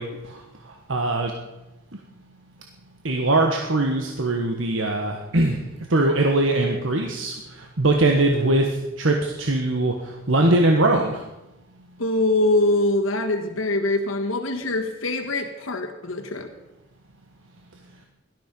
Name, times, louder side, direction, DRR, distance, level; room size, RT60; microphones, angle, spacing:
voice 1, 0.0-1.3 3.0-11.2, right 2 dB, 70° right, 2 dB, 1.4 m, -22 dB
voice 2, 12.0-16.5, left 2 dB, 85° left, 4 dB, 1.6 m, -23 dB
17.5 x 12.5 x 5.3 m, 1.0 s
head